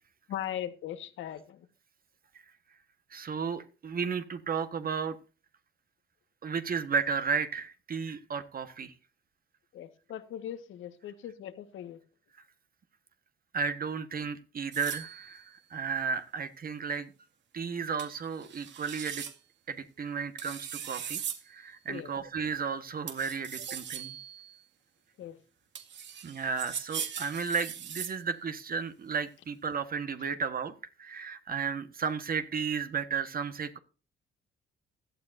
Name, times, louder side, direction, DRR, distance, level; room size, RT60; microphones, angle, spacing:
voice 1, 0.3-1.6 9.7-12.0 21.9-22.1 25.2-25.4, left 11 dB, 80° left, 10 dB, 1.6 m, -39 dB
voice 2, 3.1-5.2 6.4-8.9 13.5-17.1 17.5-19.2 19.7-21.2 21.5-24.2 26.2-30.7 31.0-33.8, right 6 dB, 45° right, 9 dB, 1.4 m, -33 dB
sound 1, 14.7-15.4 18.0-18.1 18.4-19.3 20.4-21.4 23.1-24.6 25.7-28.2, right 8 dB, 65° right, 2.2 m, -39 dB
16.5 x 12.0 x 2.7 m, 0.34 s
cardioid pair, 90°, 20 cm